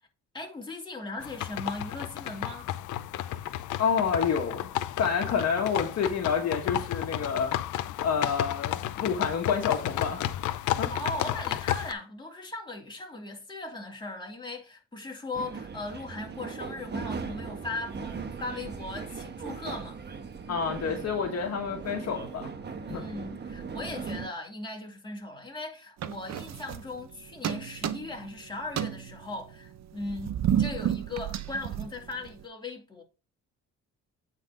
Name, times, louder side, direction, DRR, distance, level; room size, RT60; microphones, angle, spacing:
voice 1, 0.3-2.7 10.6-20.0 22.9-33.0, left 2 dB, 15° left, 2.9 m, -38 dB
sound 1, 1.2-11.9, left 12 dB, 80° left, 0.7 m, -32 dB
voice 2, 3.8-4.7 5.0-7.6 8.0-10.9 20.5-22.5 22.9-23.1, left 6 dB, 55° left, 1.8 m, -28 dB
sound 2, 15.3-24.3, right 5 dB, 35° right, 1.2 m, -38 dB
sound 3, 26.0-27.1 27.4-28.3 28.6-32.4, right 10 dB, 60° right, 0.8 m, -31 dB
9.0 x 4.1 x 5.0 m
cardioid pair, 90°, 30 cm